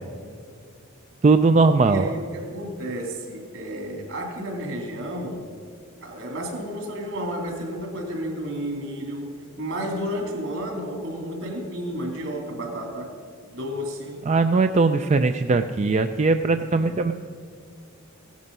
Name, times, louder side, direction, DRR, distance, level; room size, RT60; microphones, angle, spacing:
voice 1, 1.2-2.1 14.3-17.1, right 3 dB, 30° right, 8 dB, 0.3 m, -19 dB
voice 2, 1.9-5.5 6.0-13.1 13.4-14.2 16.7-17.1, equal, 65° right, 2 dB, 2.9 m, -32 dB
16.5 x 11.5 x 5.4 m, 2.2 s
head